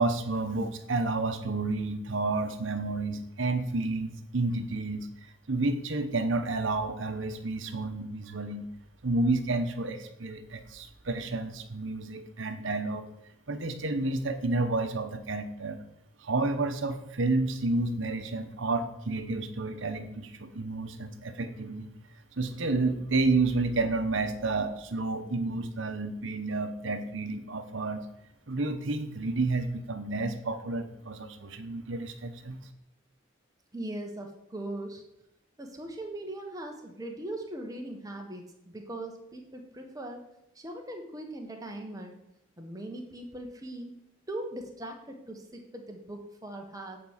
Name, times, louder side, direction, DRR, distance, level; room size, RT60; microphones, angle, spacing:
voice 1, 0.0-5.1 5.5-8.7 9.0-13.1 13.5-15.8 16.2-21.9 22.4-28.0 28.5-32.6, right 3 dB, 70° right, 8 dB, 0.9 m, -30 dB
voice 2, 33.7-35.0 35.6-40.2 40.5-42.2 42.6-43.9 44.3-47.0, right 1 dB, 20° right, 2 dB, 1.2 m, -40 dB
8.6 x 4.6 x 7.2 m, 0.84 s
head